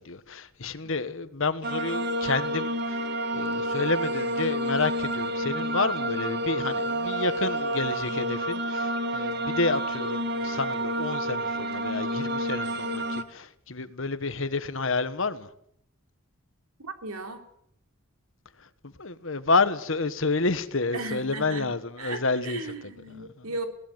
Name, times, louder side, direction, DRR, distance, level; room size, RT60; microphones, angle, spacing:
voice 1, 0.0-3.0 3.3-15.5 18.6-22.9 23.2-23.5, left 3 dB, 60° left, 1.4 m, -29 dB
sound 1, 1.6-13.2, right 1 dB, 45° right, 1.8 m, -29 dB
voice 2, 16.8-17.4 20.9-21.7 22.0-23.7, right 2 dB, 90° right, 3.3 m, -36 dB
21.0 x 18.0 x 9.0 m
head